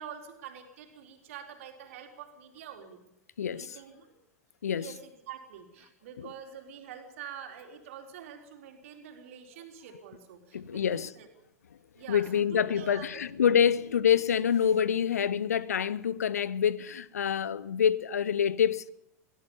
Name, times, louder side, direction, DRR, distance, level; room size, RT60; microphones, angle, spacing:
voice 1, 0.0-3.0 3.5-4.1 4.7-11.3 11.9-13.2 13.6-13.7, right 8 dB, 55° right, 4.0 m, -46 dB
voice 2, 3.4-3.8 4.6-4.9 6.2-6.3 10.5-11.1 12.1-18.9, left 8 dB, 65° left, 0.9 m, -26 dB
22.5 x 17.0 x 7.2 m
figure-of-eight pair, 90°, 9 cm